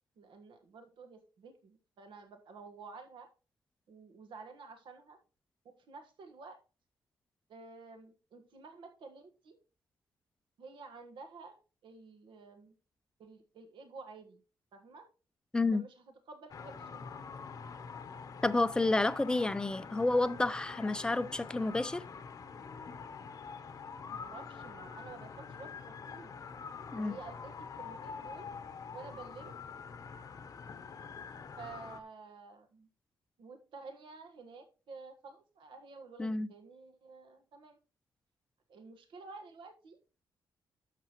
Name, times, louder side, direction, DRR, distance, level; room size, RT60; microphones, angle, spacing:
voice 1, 0.2-3.3 3.9-5.2 5.8-6.6 7.5-9.6 10.6-12.7 13.2-14.4 14.7-15.1 15.7-17.1 19.3-19.7 24.1-25.7 26.1-26.3 26.9-28.5 28.9-29.6 31.0-31.1 31.6-32.9 33.4-37.8 38.7-40.0, right 4 dB, 75° right, 1.4 m, -51 dB
voice 2, 15.5-15.9 18.4-22.0 26.9-27.2 36.2-36.5, left 2 dB, 10° left, 0.4 m, -30 dB
sound 1, 16.5-32.0, left 5 dB, 45° left, 0.8 m, -46 dB
12.0 x 6.7 x 3.0 m
wide cardioid pair, 165°, 8 cm